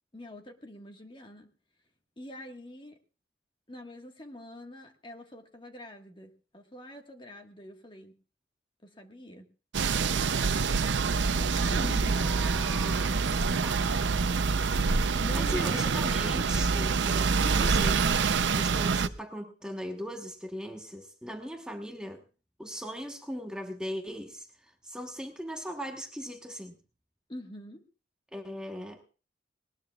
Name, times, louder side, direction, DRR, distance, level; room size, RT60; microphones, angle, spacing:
voice 1, 0.1-1.5 2.2-3.0 3.7-8.1 8.8-9.5 11.4-12.1 15.1-15.9 17.3-17.8 27.3-27.8, left 1 dB, 25° left, 4 dB, 1.6 m, -44 dB
sound 1, 9.7-19.1, right 5 dB, 80° right, 0.6 m, -26 dB
voice 2, 11.6-14.2 15.0-18.2 18.5-22.2 22.6-26.8 28.3-29.0, equal, 5° right, 3 dB, 1.2 m, -39 dB
20.0 x 19.5 x 2.4 m, 0.34 s
head